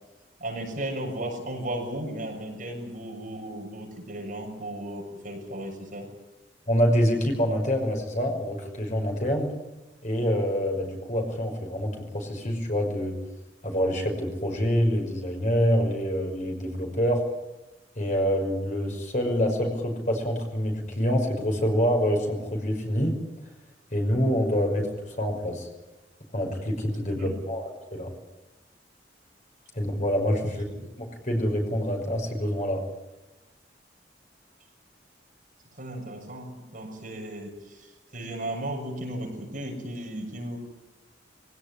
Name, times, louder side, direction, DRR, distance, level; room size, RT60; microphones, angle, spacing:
voice 1, 0.4-6.1 27.1-27.4 35.7-40.6, right 1 dB, 45° right, 0 dB, 7.1 m, -35 dB
voice 2, 6.7-9.5 10.0-13.2 13.6-17.2 18.0-23.1 23.9-24.9 25.2-25.7 26.3-28.1 29.7-30.6 31.0-32.8, equal, 40° left, 2 dB, 5.7 m, -26 dB
24.5 x 17.5 x 9.9 m, 1.0 s
head